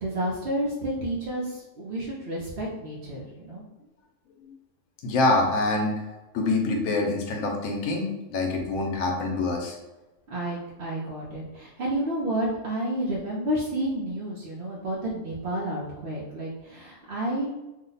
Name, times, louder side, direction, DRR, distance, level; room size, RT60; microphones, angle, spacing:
voice 1, 0.0-3.6 10.3-17.5, right 1 dB, 55° right, -6 dB, 0.7 m, -30 dB
voice 2, 5.0-6.0 6.3-9.8, left 2 dB, 90° left, 1 dB, 1.1 m, -25 dB
2.8 x 2.1 x 3.8 m, 1.0 s
omnidirectional pair, 1.4 m